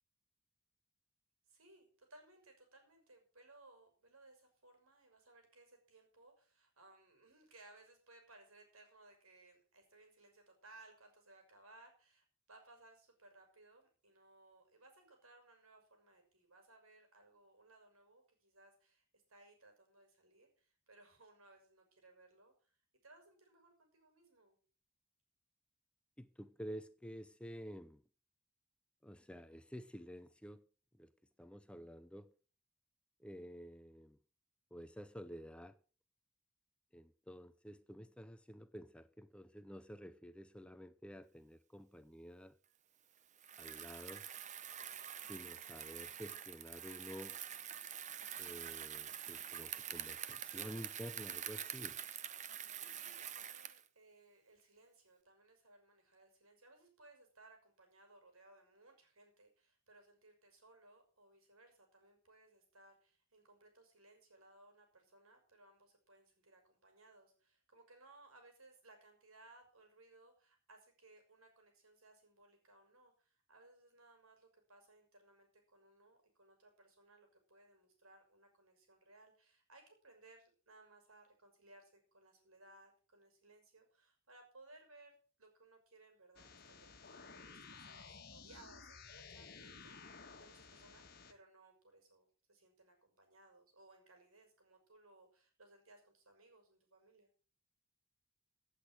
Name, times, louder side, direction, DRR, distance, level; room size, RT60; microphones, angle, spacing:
voice 1, 1.5-24.6 52.9-97.3, right 2 dB, 85° right, 6.2 m, -64 dB
voice 2, 26.2-28.0 29.0-30.6 31.0-31.1 31.4-32.3 33.2-34.2 34.7-35.8 36.9-42.6 43.6-44.3 45.3-47.4 48.4-52.0, equal, 5° left, 0.7 m, -51 dB
Bicycle, 43.4-53.9, right 9 dB, 35° right, 0.9 m, -46 dB
sound 1, 86.4-91.3, left 5 dB, 50° left, 1.7 m, -55 dB
17.0 x 8.4 x 6.2 m
head